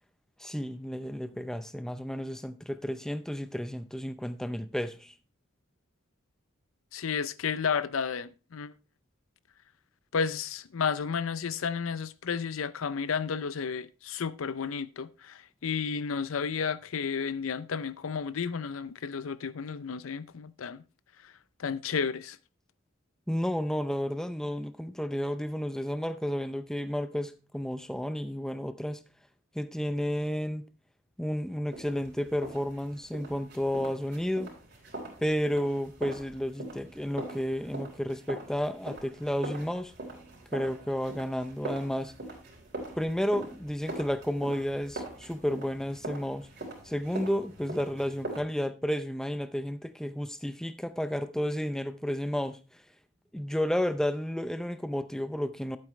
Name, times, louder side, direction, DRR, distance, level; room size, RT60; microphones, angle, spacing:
voice 1, 0.4-5.1 23.3-29.0 29.6-30.7 31.2-34.5 35.2-39.9 40.5-42.1 43.0-46.5 46.8-52.6 53.3-55.8, equal, 5° left, 0.5 m, -32 dB
voice 2, 6.9-8.7 10.1-20.8 21.6-22.4, left 6 dB, 90° left, 0.5 m, -32 dB
sound 1, 31.7-48.4, right 2 dB, 50° right, 3.8 m, -42 dB
11.0 x 8.6 x 3.2 m
head